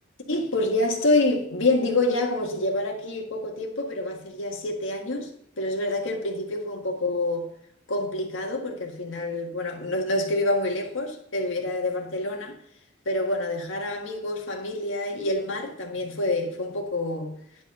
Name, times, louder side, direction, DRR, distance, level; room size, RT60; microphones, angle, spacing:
voice 1, 0.3-5.3 5.6-7.5 7.9-12.5 13.1-17.3, left 2 dB, 75° left, 1.8 m, -27 dB
10.5 x 5.1 x 5.4 m
head